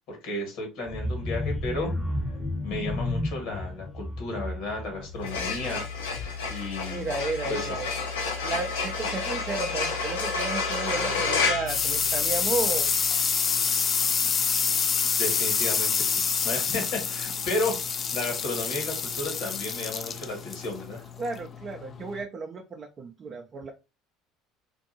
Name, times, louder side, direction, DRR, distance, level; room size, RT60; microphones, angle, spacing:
voice 1, 0.1-1.9 2.6-5.9 6.5-7.1 7.5-7.8 15.1-17.8 18.1-21.0, left 2 dB, 60° left, 2 dB, 1.4 m, -33 dB
sound 1, 0.9-6.6 7.0-7.3 7.6-7.7, left 1 dB, 15° left, 0.8 m, -32 dB
sound 2, 5.1-12.6, left 4 dB, 80° left, 0.8 m, -30 dB
voice 2, 6.9-7.9 8.4-12.9 21.2-23.7, right 3 dB, 40° right, 3 dB, 0.5 m, -33 dB
sound 3, 10.9-22.2, left 6 dB, 40° left, 0.4 m, -27 dB
2.6 x 2.6 x 2.7 m, 0.27 s
hypercardioid pair, 65°, 0 cm